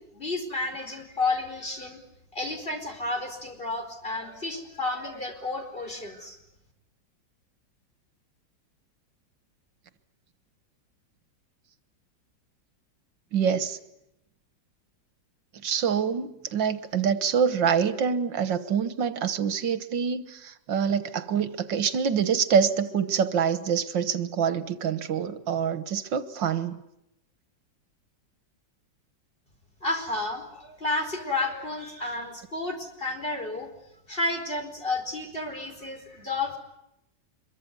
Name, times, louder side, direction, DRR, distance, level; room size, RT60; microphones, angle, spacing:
voice 1, 0.0-2.0 2.3-6.4 29.8-33.7 34.1-36.6, left 2 dB, 30° left, 4.9 m, -31 dB
voice 2, 13.3-13.8 15.6-26.8, right 7 dB, 80° right, 2.0 m, -26 dB
25.5 x 23.5 x 9.7 m
omnidirectional pair, 2.0 m